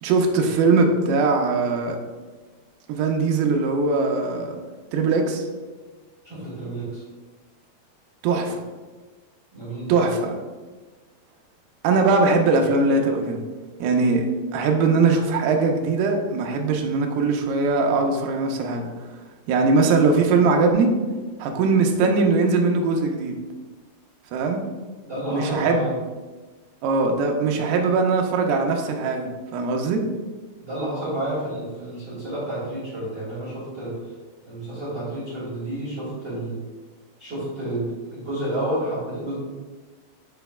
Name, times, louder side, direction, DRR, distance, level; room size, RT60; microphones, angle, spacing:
voice 1, 0.0-2.0 2.9-4.6 4.9-5.5 8.2-8.6 9.9-10.4 11.8-13.4 13.8-14.3 14.5-18.9 19.5-20.9 21.4-23.4 24.3-24.6 25.3-25.9 26.8-30.0, right 3 dB, 80° right, 2 dB, 2.5 m, -21 dB
voice 2, 6.2-7.0 9.5-10.1 25.0-26.0 30.6-33.9 34.5-36.6 37.2-39.3, right 1 dB, 35° right, -9 dB, 1.7 m, -30 dB
9.2 x 4.9 x 2.3 m, 1.3 s
omnidirectional pair, 4.8 m